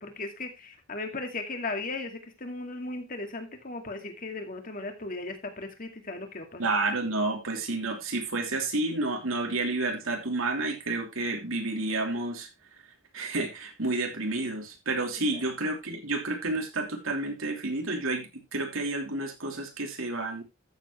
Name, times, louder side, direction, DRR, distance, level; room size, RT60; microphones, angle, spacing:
voice 1, 0.0-6.7, left 3 dB, 40° left, 5 dB, 2.3 m, -37 dB
voice 2, 6.6-12.5 13.1-20.4, right 2 dB, 80° right, 3 dB, 3.1 m, -30 dB
13.5 x 7.8 x 3.2 m, 0.24 s
head